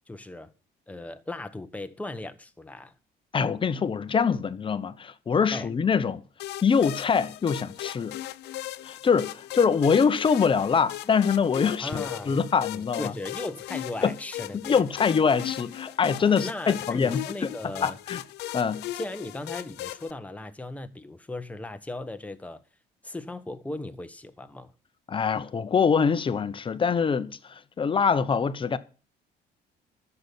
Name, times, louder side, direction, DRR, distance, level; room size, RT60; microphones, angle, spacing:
voice 1, 0.1-0.5 0.9-2.9 5.5-5.7 11.8-12.4 12.7-14.8 16.2-18.0 18.9-22.6 23.0-24.7, left 2 dB, 10° left, 1.2 m, -37 dB
voice 2, 3.3-6.2 6.6-8.2 8.8-13.1 14.0-14.1 14.6-17.5 17.8-18.2 18.5-18.8 25.1-28.8, left 6 dB, 30° left, 1.0 m, -24 dB
sound 1, 6.4-20.1, left 15 dB, 80° left, 0.7 m, -38 dB
11.0 x 7.0 x 8.3 m
cardioid pair, 110°, 17 cm